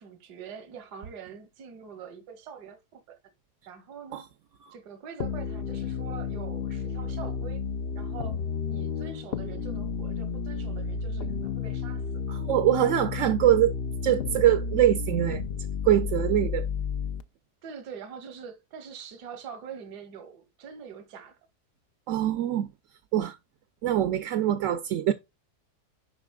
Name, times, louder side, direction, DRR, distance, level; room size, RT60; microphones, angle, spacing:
voice 1, 0.0-3.2 3.7-4.3 4.7-7.6 7.9-8.4 8.7-12.4 17.6-21.4, right 7 dB, 85° right, 1.6 m, -44 dB
sound 1, 5.2-17.2, left 5 dB, 70° left, 0.5 m, -32 dB
voice 2, 12.4-13.8 14.0-15.4 15.8-16.7 22.1-22.7 23.1-23.4 23.8-25.1, right 12 dB, 65° right, 0.8 m, -23 dB
11.0 x 4.0 x 2.3 m
omnidirectional pair, 1.7 m